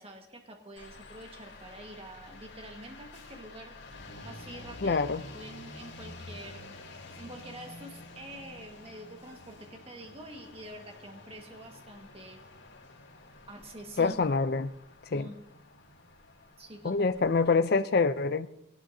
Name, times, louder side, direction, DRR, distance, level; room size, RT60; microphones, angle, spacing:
voice 1, 0.0-3.8 4.2-5.0 5.3-6.8 7.1-12.4 13.5-14.2 15.1-15.4 16.6-16.9, right 1 dB, 30° right, 3 dB, 1.6 m, -46 dB
sound 1, 0.8-17.7, left 2 dB, 80° left, 5.1 m, -49 dB
voice 2, 4.8-5.2 14.0-14.7 15.1-15.3 16.8-18.5, left 4 dB, 55° left, 12 dB, 0.5 m, -26 dB
20.5 x 17.5 x 2.8 m, 0.87 s
head